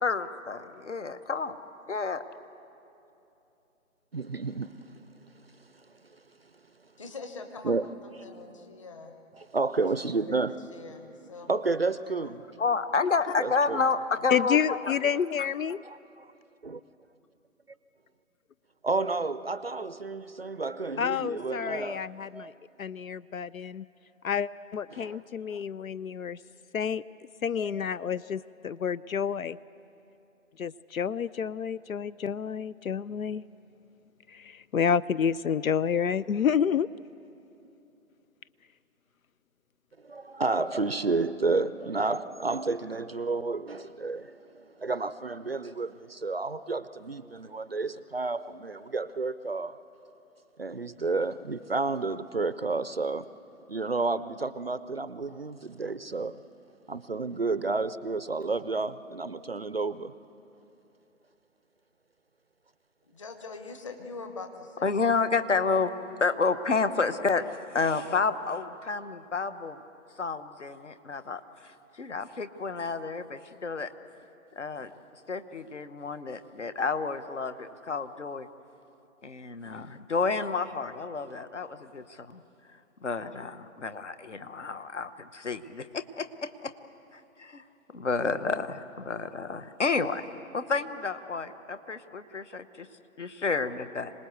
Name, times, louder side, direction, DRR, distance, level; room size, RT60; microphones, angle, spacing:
voice 1, 0.0-1.6 1.9-2.2 12.6-14.9 64.8-65.9 66.2-67.4 67.7-69.8 70.2-71.4 72.0-73.9 74.6-74.9 75.3-78.5 79.2-82.4 83.0-86.7 87.1-87.6 87.9-90.2 90.5-92.9 93.2-94.1, left 4 dB, 55° left, 1.1 m, -30 dB
voice 2, 4.1-4.7 7.6-7.8 9.5-10.6 11.5-12.4 13.4-13.8 15.8-16.3 16.6-16.8 18.8-22.5 24.9-25.2 25.5-25.6 27.6-27.7 40.0-49.8 50.6-53.3 53.7-56.4 56.9-60.1, right 3 dB, 45° right, 0.5 m, -31 dB
voice 3, 7.0-7.7 8.0-9.1 9.8-9.9 10.3-10.4 10.7-11.8 12.0-12.4 63.0-65.9, left 4 dB, 20° left, 1.2 m, -44 dB
voice 4, 14.3-15.8 21.0-22.5 22.8-23.8 24.2-26.4 26.7-27.0 27.4-29.6 30.6-33.4 34.3-36.9, left 7 dB, 75° left, 0.5 m, -29 dB
26.0 x 19.0 x 8.2 m
figure-of-eight pair, 155°, 42 cm